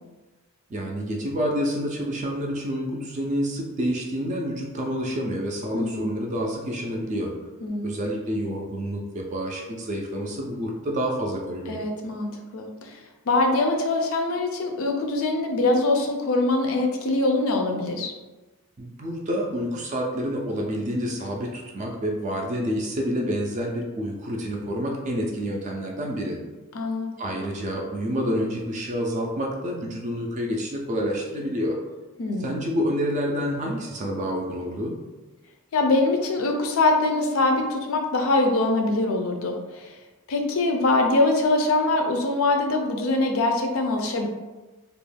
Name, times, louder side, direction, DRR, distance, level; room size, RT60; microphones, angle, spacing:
voice 1, 0.7-7.3 7.8-11.8 18.8-26.4 27.2-31.8 32.4-34.9, equal, 35° right, 0 dB, 0.4 m, -28 dB
voice 2, 5.7-6.0 7.6-7.9 11.7-13.0 13.3-18.1 26.7-27.1 32.2-32.5 35.7-40.0 40.3-44.3, left 2 dB, 65° left, 3 dB, 0.4 m, -23 dB
2.4 x 2.1 x 3.2 m, 1.2 s
head